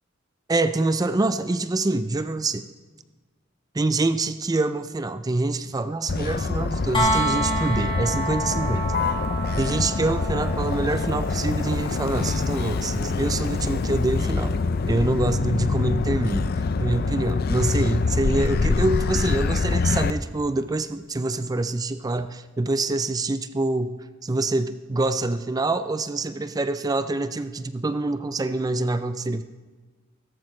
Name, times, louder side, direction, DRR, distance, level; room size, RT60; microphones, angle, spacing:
voice 1, 0.5-2.7 3.7-8.9 9.6-14.5 14.9-16.5 16.8-29.4, right 2 dB, 20° right, 11 dB, 0.4 m, -25 dB
Motor vehicle (road), 6.1-20.1, left 4 dB, 50° left, 0.5 m, -25 dB
sound 1, 6.9-18.8 20.7-20.8, right 1 dB, 25° left, 2.0 m, -32 dB
16.5 x 13.5 x 3.2 m, 1.3 s
head